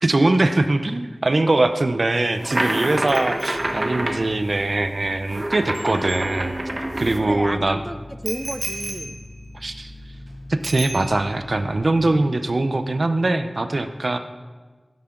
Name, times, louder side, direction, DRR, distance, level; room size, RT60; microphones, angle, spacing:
voice 1, 0.0-6.6 7.0-7.8 9.5-9.9 10.5-14.2, right 2 dB, 60° right, 9 dB, 0.7 m, -22 dB
sound 1, 2.2-7.2, right 1 dB, 40° right, 1.2 m, -27 dB
Bicycle bell, 3.1-6.9 8.2-10.3 10.6-11.5 11.8-12.1, right 2 dB, 85° right, 1.6 m, -37 dB
sound 2, 3.5-12.2, left 1 dB, 45° left, 0.7 m, -42 dB
voice 2, 7.2-9.2, equal, 5° right, 10 dB, 0.4 m, -32 dB
12.5 x 10.5 x 3.9 m, 1.3 s
wide cardioid pair, 55°, 0 cm